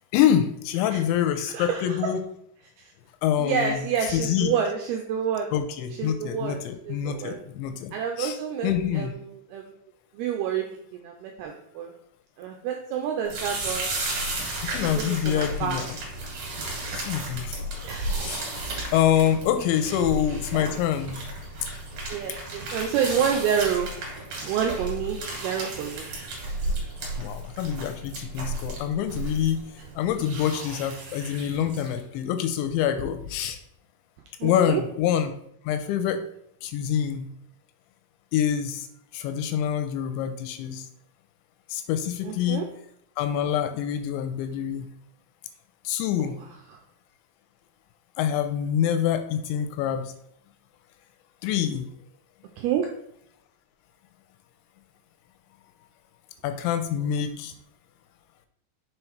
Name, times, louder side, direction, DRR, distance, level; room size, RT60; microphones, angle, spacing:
voice 1, 0.1-2.2 3.2-3.8 4.1-4.5 5.5-8.4 8.6-9.1 14.7-15.9 17.0-17.6 18.2-18.5 18.9-21.2 27.2-29.6 30.0-33.6 34.4-35.3 35.6-36.2 36.6-37.3 38.3-38.9 39.1-40.9 41.7-42.6 43.2-44.9 45.8-46.4 48.2-50.1 51.4-51.9 56.4-57.5, left 9 dB, 85° left, 8 dB, 3.0 m, -26 dB
voice 2, 1.4-2.1 2.8-2.9 3.4-5.5 6.0-6.6 6.8-7.4 7.9-9.7 10.1-10.7 10.9-11.9 12.4-13.9 14.9-15.8 17.8-18.1 19.9-20.0 22.1-23.9 24.4-26.1 34.4-34.8 42.2-42.7 46.2-46.3 46.7-46.8 52.6-52.9, right 7 dB, 85° right, 2 dB, 2.3 m, -28 dB
sound 1, 13.3-32.0, right 1 dB, 50° right, 2.3 m, -34 dB
6.8 x 3.8 x 4.5 m, 0.72 s
omnidirectional pair, 5.1 m